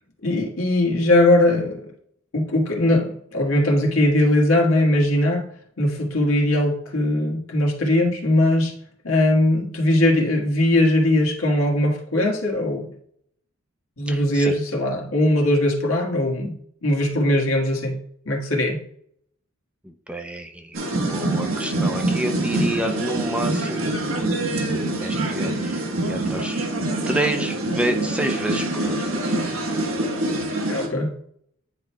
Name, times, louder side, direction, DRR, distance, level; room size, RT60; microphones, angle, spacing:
voice 1, 0.2-1.8 2.3-5.4 5.8-8.7 9.0-12.9 14.0-16.5 16.8-18.0 18.2-18.8 30.7-31.1, left 1 dB, 85° left, 0 dB, 1.6 m, -20 dB
voice 2, 14.1-14.5 19.8-20.8 21.1-26.7 27.1-29.0, right 1 dB, 5° right, 5 dB, 0.5 m, -29 dB
sound 1, 20.7-30.9, right 2 dB, 85° right, 1.3 m, -25 dB
9.5 x 4.5 x 2.2 m, 0.66 s
head